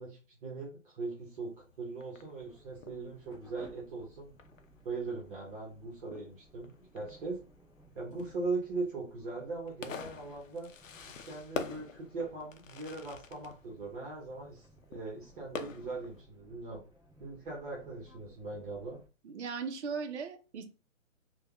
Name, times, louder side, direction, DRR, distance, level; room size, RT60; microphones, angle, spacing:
voice 1, 0.0-4.3 4.8-7.4 7.9-10.7 11.1-16.8 17.2-19.0, right 3 dB, 40° right, -2 dB, 1.0 m, -40 dB
Fireworks, 1.2-16.2, left 5 dB, 75° left, 0.6 m, -47 dB
sound 1, 2.4-19.1, right 1 dB, ahead, 0.5 m, -61 dB
voice 2, 19.2-20.6, right 5 dB, 60° right, 6 dB, 0.7 m, -38 dB
3.3 x 2.3 x 2.3 m, 0.33 s
hypercardioid pair, 145°, 39 cm